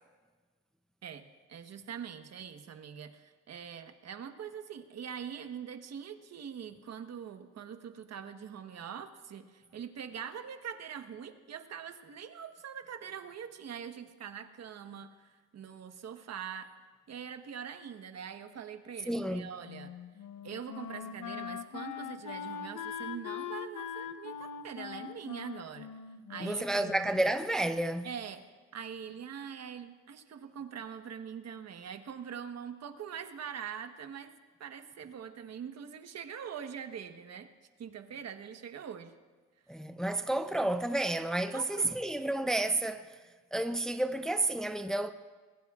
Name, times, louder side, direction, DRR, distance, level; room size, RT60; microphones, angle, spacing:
voice 1, 1.0-16.7 17.1-19.9 20.4-25.9 26.3-26.9 28.0-28.4 28.7-37.5 37.8-39.1 41.5-41.9, right 8 dB, 55° right, 1.3 m, -43 dB
voice 2, 19.1-19.5 26.4-28.1 39.7-43.2 43.5-45.1, right 1 dB, ahead, 0.6 m, -31 dB
Wind instrument woodwind instrument, 19.6-27.4, left 8 dB, 80° left, 1.0 m, -42 dB
25.5 x 20.5 x 2.5 m
cardioid pair, 90°, 30 cm